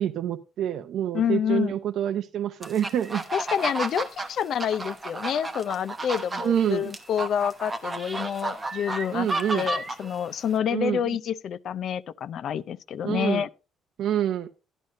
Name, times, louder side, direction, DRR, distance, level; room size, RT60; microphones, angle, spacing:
voice 1, 0.0-3.2 6.4-6.9 9.1-9.7 10.7-11.2 13.0-13.4 14.0-14.5, right 10 dB, 55° right, 0.6 m, -27 dB
voice 2, 1.1-1.7 3.3-13.5, left 8 dB, 50° left, 0.5 m, -28 dB
sound 1, 2.6-10.5, right 2 dB, 15° right, 1.1 m, -32 dB
12.0 x 11.0 x 2.6 m
cardioid pair, 165°, 0 cm